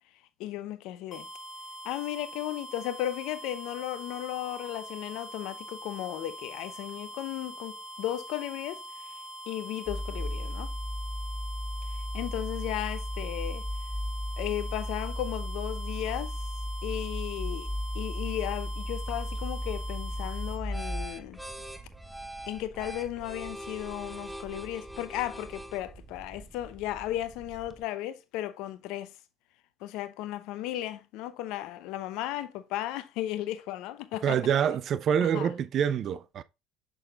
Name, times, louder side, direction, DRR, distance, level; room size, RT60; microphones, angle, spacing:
voice 1, 0.4-1.3 1.8-8.8 9.1-9.2 9.5-10.7 11.9-13.7 14.4-16.4 16.8-17.7 17.9-21.4 22.5-29.1 29.8-34.4 35.2-35.5, left 13 dB, 70° left, 0.7 m, -35 dB
sound 1, 1.1-20.6, right 1 dB, 35° left, 3.5 m, -43 dB
sound 2, 9.9-21.1, left 1 dB, 15° left, 2.1 m, -35 dB
sound 3, 19.0-27.8, right 1 dB, 5° right, 0.9 m, -44 dB
voice 2, 34.2-36.4, right 8 dB, 55° right, 0.5 m, -26 dB
6.6 x 6.3 x 2.4 m
hypercardioid pair, 70°, 0 cm